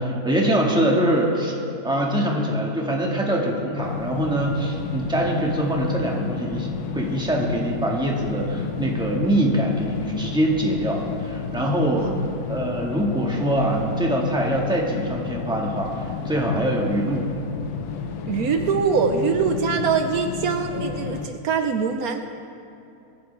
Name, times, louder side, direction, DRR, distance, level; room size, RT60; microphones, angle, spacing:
voice 1, 0.0-1.6 1.8-12.1 12.5-15.9 16.2-17.3, right 1 dB, 5° right, -2 dB, 1.7 m, -23 dB
sound 1, 3.8-21.3, left 6 dB, 80° left, 1.3 m, -32 dB
voice 2, 11.9-12.3 18.3-22.2, right 6 dB, 70° right, 6 dB, 1.2 m, -23 dB
25.0 x 10.0 x 3.4 m, 2.7 s
omnidirectional pair, 1.7 m